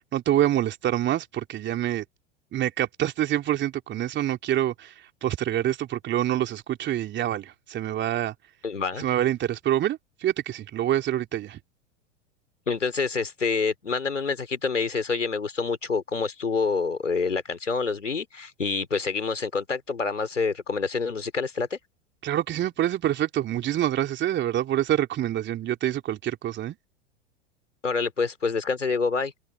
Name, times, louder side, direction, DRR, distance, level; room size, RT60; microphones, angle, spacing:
voice 1, 0.1-2.0 2.5-8.3 9.0-11.6 22.2-26.8, right 12 dB, 30° right, 3.2 m, -26 dB
voice 2, 8.6-9.1 12.7-21.8 27.8-29.3, left 4 dB, 85° left, 3.8 m, -27 dB
figure-of-eight pair, 90°, 36 cm